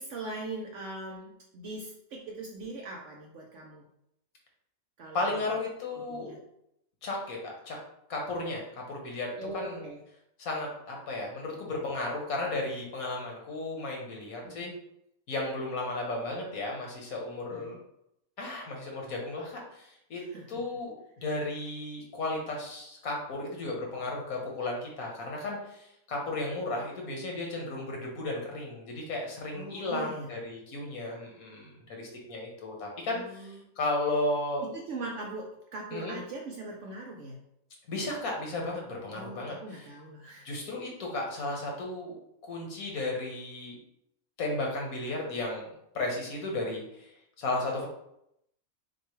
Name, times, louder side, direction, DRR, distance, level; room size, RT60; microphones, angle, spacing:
voice 1, 0.0-3.8 5.0-5.6 5.9-6.4 9.4-10.0 14.4-14.7 17.5-17.8 20.2-20.6 29.5-30.3 33.1-33.6 34.6-37.4 39.1-40.5, right 2 dB, 65° right, 0 dB, 0.9 m, -41 dB
voice 2, 5.1-6.4 7.0-7.8 8.1-9.8 10.4-14.7 15.3-17.8 18.4-20.2 20.5-20.9 21.2-34.7 35.9-36.2 37.9-39.9 40.4-42.2 42.4-43.8 44.4-45.7 45.9-47.9, left 2 dB, 80° left, 0 dB, 1.5 m, -34 dB
6.5 x 2.2 x 3.1 m, 0.78 s
omnidirectional pair, 1.5 m